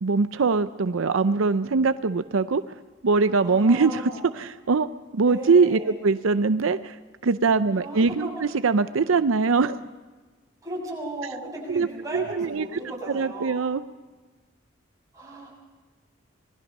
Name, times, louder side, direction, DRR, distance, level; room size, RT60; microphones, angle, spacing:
voice 1, 0.0-2.6 3.0-4.0 4.4-4.9 5.1-6.9 7.2-9.8 11.7-12.7 13.1-13.8, right 4 dB, 85° right, 12 dB, 0.6 m, -22 dB
voice 2, 3.4-4.3 5.2-6.0 7.8-8.4 10.6-13.6 15.1-15.5, right 1 dB, 15° right, -3 dB, 6.7 m, -36 dB
26.0 x 19.5 x 5.4 m, 1.3 s
head